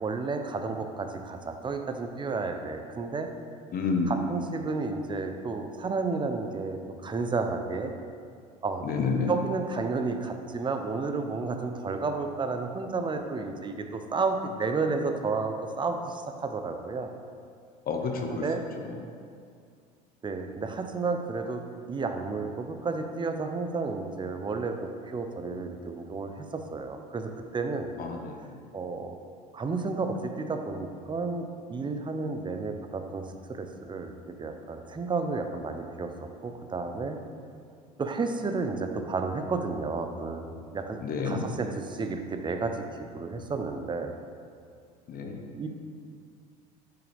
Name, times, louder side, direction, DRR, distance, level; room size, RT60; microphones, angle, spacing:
voice 1, 0.0-3.3 4.1-7.9 8.6-8.8 9.3-17.1 18.3-18.7 20.2-21.6 21.9-27.9 28.7-29.2 29.5-34.1 34.4-36.1 36.4-37.2 38.0-40.5 40.7-42.8 43.1-44.1 45.5-45.7, right 4 dB, 25° right, 6 dB, 0.8 m, -32 dB
voice 2, 3.7-4.1 8.8-9.3 17.9-18.4 28.0-28.5 41.0-41.5 45.1-45.4, left 5 dB, 45° left, 3 dB, 1.1 m, -29 dB
8.7 x 6.0 x 3.5 m, 2.2 s
hypercardioid pair, 80°, 21 cm